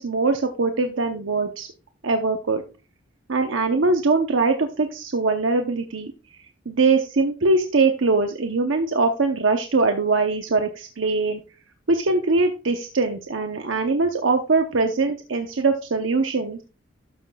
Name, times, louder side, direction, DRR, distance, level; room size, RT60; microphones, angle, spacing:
voice 1, 0.0-1.7 2.0-2.6 3.3-6.1 6.7-11.4 11.9-16.6, right 3 dB, 90° right, 5 dB, 0.8 m, -22 dB
13.0 x 5.8 x 2.3 m, 0.31 s
head